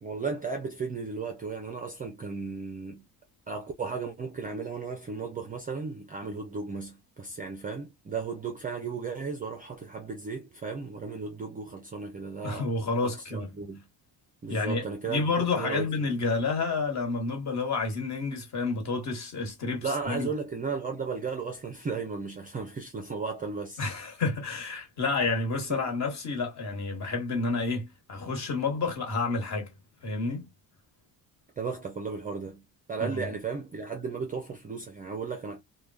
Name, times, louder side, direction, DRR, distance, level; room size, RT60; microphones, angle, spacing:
voice 1, 0.0-3.0 3.5-12.7 13.0-13.9 14.4-16.1 19.8-23.9 25.7-25.9 31.6-32.6 32.9-35.6, right 4 dB, 20° right, 0.4 m, -35 dB
voice 2, 12.4-13.5 14.5-20.3 23.8-29.7 30.0-30.5 33.0-33.2, left 3 dB, 40° left, 1.2 m, -30 dB
3.3 x 2.2 x 2.3 m
cardioid pair, 180°, 43 cm